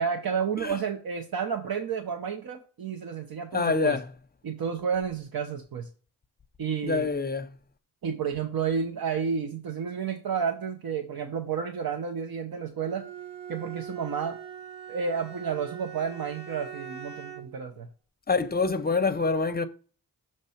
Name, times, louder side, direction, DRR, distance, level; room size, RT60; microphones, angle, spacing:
voice 1, 0.0-4.0 4.4-5.9 6.6-7.1 8.0-13.1 13.5-14.4 14.9-17.9, right 6 dB, 65° right, 0.7 m, -31 dB
voice 2, 3.5-4.0 6.8-7.5 18.3-19.7, left 4 dB, 25° left, 0.5 m, -26 dB
Bowed string instrument, 12.8-17.6, right 8 dB, 15° right, 1.2 m, -42 dB
6.6 x 3.2 x 5.6 m
wide cardioid pair, 115°, 39 cm